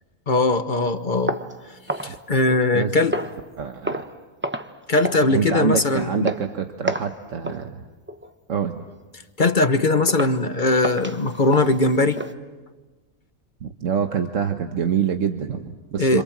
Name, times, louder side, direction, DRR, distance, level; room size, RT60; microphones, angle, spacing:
voice 1, 0.3-1.4 2.0-3.2 4.9-6.3 9.4-12.2 16.0-16.2, left 2 dB, 35° left, 9 dB, 1.1 m, -20 dB
sound 1, 1.3-2.8 3.1-3.5 3.8-4.2 4.4-4.8 5.0-5.3 5.6-5.9 6.3-6.5 6.9-7.2 7.4-7.7 8.1-8.3 8.8-8.9 9.4-9.5 10.1-10.4 10.8-12.3, right 1 dB, 10° right, 0.7 m, -30 dB
voice 2, 3.6-4.0 5.3-7.8 8.5-8.8 13.6-16.2, right 7 dB, 60° right, 5 dB, 1.4 m, -25 dB
28.5 x 26.5 x 7.4 m, 1.3 s
omnidirectional pair, 1.5 m